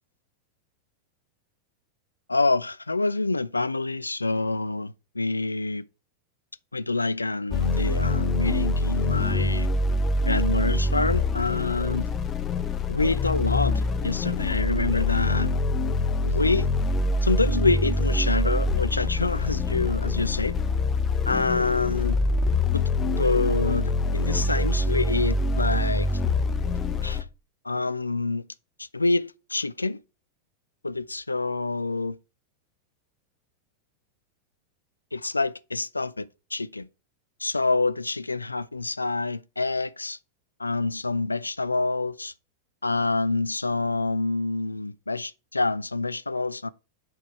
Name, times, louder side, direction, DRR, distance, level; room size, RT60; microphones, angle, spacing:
voice 1, 2.3-5.8 6.7-9.7 10.2-12.1 12.9-15.6 16.2-16.7 17.2-20.5 21.3-22.2 22.7-22.8 23.1-26.1 27.0-27.2 27.6-28.4 28.8-30.0 30.8-32.2 35.1-36.9 37.4-40.2 40.6-42.3 42.8-46.7, left 3 dB, 80° left, 0.3 m, -27 dB
sound 1, 7.5-27.2, left 2 dB, 25° left, 0.7 m, -25 dB
7.8 x 4.7 x 4.4 m
figure-of-eight pair, 90°, 0 cm